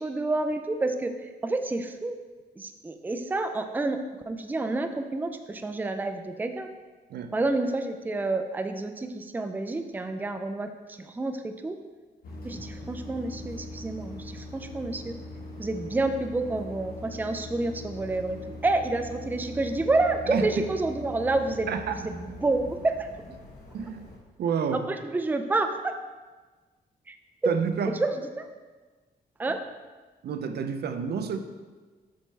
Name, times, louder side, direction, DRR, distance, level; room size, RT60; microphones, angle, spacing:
voice 1, 0.0-2.2 2.6-4.0 4.3-6.7 7.3-10.7 11.0-11.8 12.4-15.2 15.6-21.7 22.0-23.1 24.7-25.9 27.1-27.2 27.4-27.5 28.0-28.5 29.4-29.6, right 2 dB, 10° right, 7 dB, 0.4 m, -29 dB
sound 1, 12.2-24.2, left 2 dB, 60° left, 1.3 m, -42 dB
voice 2, 21.7-22.0 23.7-24.0 24.4-24.9 27.5-28.0 30.2-31.4, right 6 dB, 70° right, 8 dB, 0.6 m, -29 dB
7.6 x 6.4 x 3.3 m, 1.3 s
cardioid pair, 110°, 17 cm